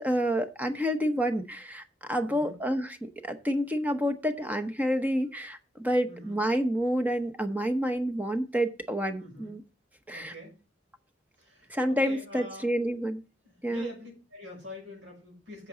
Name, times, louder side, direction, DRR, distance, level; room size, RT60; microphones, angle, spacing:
voice 1, 0.0-9.6 10.1-10.3 11.7-13.2 13.6-13.9, equal, 10° right, 8 dB, 0.9 m, -29 dB
voice 2, 2.2-2.6 6.0-6.4 9.2-9.5 10.1-10.6 11.4-12.7 13.4-15.7, left 1 dB, 80° right, -1 dB, 6.0 m, -45 dB
10.5 x 7.3 x 3.8 m, 0.32 s
head